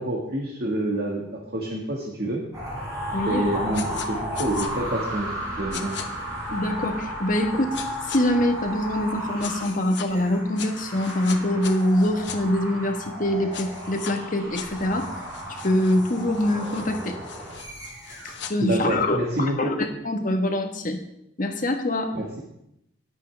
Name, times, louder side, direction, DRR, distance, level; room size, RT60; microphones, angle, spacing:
voice 1, 0.0-2.4 3.2-5.9 18.6-19.8 22.1-22.4, right 1 dB, 50° right, -1 dB, 1.7 m, -27 dB
sound 1, 2.5-18.5, equal, 20° right, 4.5 m, -34 dB
voice 2, 3.1-3.6 6.5-7.8 8.1-15.2 15.6-17.2 18.2-21.0 21.4-22.1, left 1 dB, 40° left, 5 dB, 1.4 m, -24 dB
sound 2, 3.7-4.1 4.3-4.7 5.7-6.0 7.7-8.2 9.4-10.1 10.6-12.4 13.5-14.1 14.5-18.5, left 8 dB, 60° left, 1.0 m, -39 dB
20.0 x 8.1 x 3.4 m, 0.82 s
head